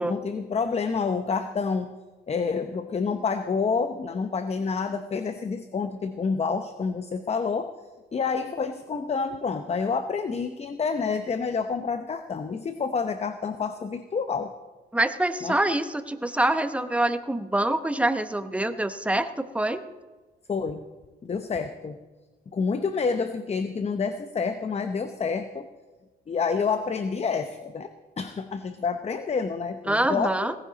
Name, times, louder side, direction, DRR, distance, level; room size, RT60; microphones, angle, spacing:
voice 1, 0.0-1.9 2.3-7.7 8.1-14.5 15.4-15.6 20.5-20.8 21.2-22.0 22.5-25.7 26.3-27.9 28.2-30.3, left 5 dB, 30° left, 9 dB, 0.8 m, -28 dB
voice 2, 14.9-19.8 29.9-30.5, right 1 dB, 5° right, 9 dB, 0.9 m, -25 dB
18.0 x 15.0 x 4.0 m, 1.2 s
cardioid pair, 90°, 20 cm